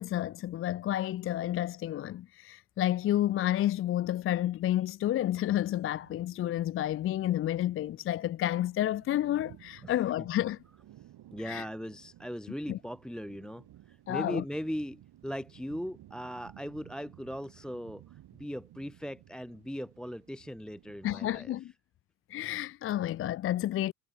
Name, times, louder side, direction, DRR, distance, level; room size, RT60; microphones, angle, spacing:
voice 1, 0.0-10.6 11.4-11.7 12.7-12.8 14.1-14.4 21.0-21.7 22.3-23.9, left 13 dB, 30° left, 0.4 m, -30 dB
sound 1, 5.0-21.2, right 13 dB, 50° right, 2.3 m, -57 dB
voice 2, 11.3-21.5, equal, ahead, 0.7 m, -39 dB
hypercardioid pair, 60°, 49 cm